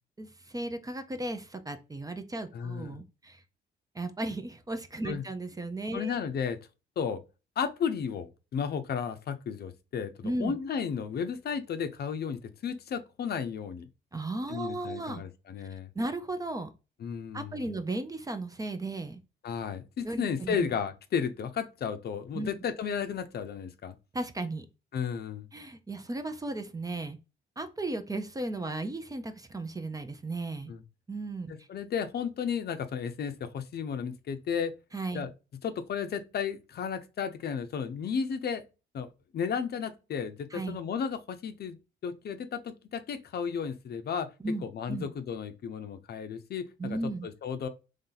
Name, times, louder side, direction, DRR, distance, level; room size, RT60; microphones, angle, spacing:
voice 1, 0.2-3.4 3.9-6.2 10.2-10.6 14.1-15.2 15.6-15.7 15.9-16.7 17.3-19.2 20.0-20.7 22.3-22.5 24.1-24.7 25.5-27.2 27.6-30.7 31.1-31.7 34.9-35.2 40.5-40.8 44.4-45.1 46.8-47.3, right 2 dB, 20° right, 0.5 m, -35 dB
voice 2, 2.5-3.0 5.1-5.2 5.9-6.6 7.0-7.2 7.6-13.9 14.5-15.9 17.0-17.8 19.4-24.0 24.9-25.5 30.7-30.8 31.5-34.7 35.1-35.3 35.6-38.6 38.9-41.8 42.0-44.3 44.6-47.0 47.2-47.7, left 7 dB, 55° left, 0.6 m, -33 dB
3.2 x 2.7 x 3.8 m
cardioid pair, 90°, 20 cm